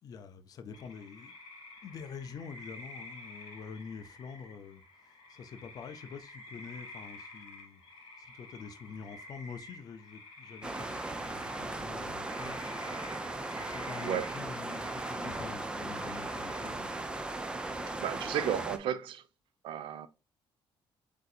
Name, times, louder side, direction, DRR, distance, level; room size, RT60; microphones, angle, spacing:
voice 1, 0.0-1.3 1.8-4.8 5.3-7.8 8.2-12.6 13.6-16.9, left 6 dB, 45° left, 0.5 m, -46 dB
sound 1, 0.7-16.7, left 2 dB, 60° left, 1.6 m, -51 dB
sound 2, 10.6-18.8, right 2 dB, 10° right, 0.4 m, -37 dB
voice 2, 18.0-19.2 19.6-20.1, right 10 dB, 65° right, 0.5 m, -34 dB
7.9 x 2.7 x 2.4 m
cardioid pair, 175°, 9 cm